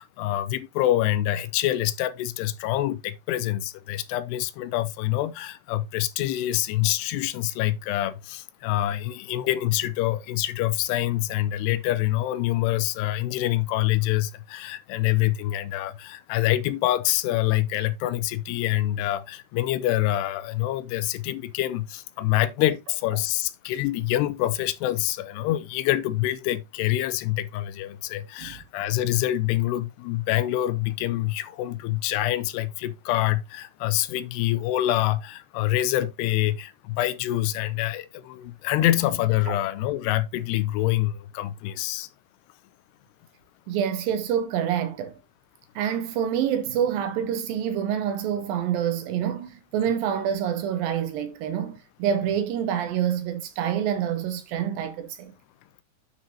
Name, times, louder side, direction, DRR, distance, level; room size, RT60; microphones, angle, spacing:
voice 1, 0.0-42.1, left 14 dB, 85° left, 2.6 m, -26 dB
voice 2, 43.7-45.1 45.8-55.3, right 9 dB, 80° right, 2.1 m, -27 dB
9.9 x 6.0 x 2.7 m
omnidirectional pair, 4.8 m